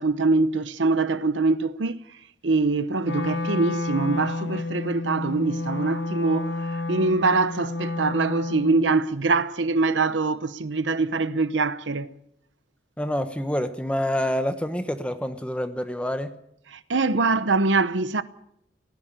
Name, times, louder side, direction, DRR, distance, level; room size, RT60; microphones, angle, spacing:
voice 1, 0.0-2.0 2.4-12.1 16.7-18.2, right 3 dB, 85° right, 0.9 m, -23 dB
Wind instrument woodwind instrument, 3.0-9.0, left 2 dB, 70° left, 0.9 m, -30 dB
voice 2, 13.0-16.4, equal, 5° left, 1.0 m, -27 dB
19.0 x 15.5 x 8.8 m
head